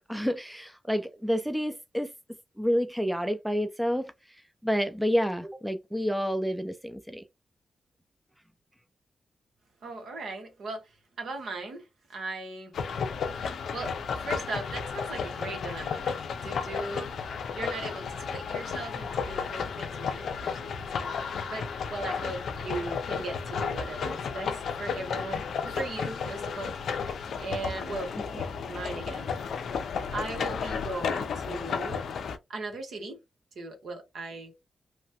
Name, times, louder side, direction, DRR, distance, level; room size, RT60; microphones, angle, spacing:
voice 1, 0.1-2.1 2.6-4.1 4.6-7.2, equal, 5° right, 0.4 m, -29 dB
voice 2, 9.8-12.7 13.5-16.2 16.4-17.1 17.5-21.2 21.5-26.7 27.0-29.3 29.9-32.0 32.5-33.2 33.5-34.5, right 3 dB, 75° right, 1.0 m, -38 dB
sound 1, 12.7-32.4, left 6 dB, 80° left, 0.4 m, -33 dB
3.0 x 2.2 x 2.8 m
cardioid pair, 60°, 0 cm